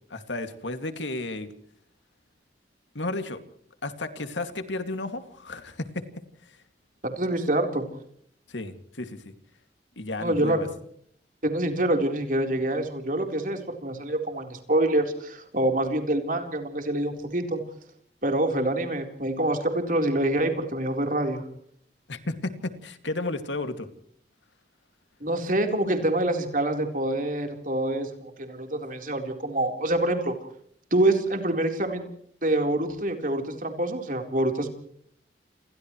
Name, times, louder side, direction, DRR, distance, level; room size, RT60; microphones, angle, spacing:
voice 1, 0.1-1.5 2.9-3.4 3.8-6.0 8.5-9.2 10.0-10.7 22.1-23.9, left 2 dB, 90° left, 8 dB, 2.4 m, -33 dB
voice 2, 7.0-7.8 10.2-10.6 11.4-17.6 18.2-21.4 25.2-30.3 30.9-32.1 32.4-34.7, right 1 dB, 45° right, 4 dB, 4.1 m, -26 dB
28.5 x 28.5 x 3.2 m, 0.65 s
head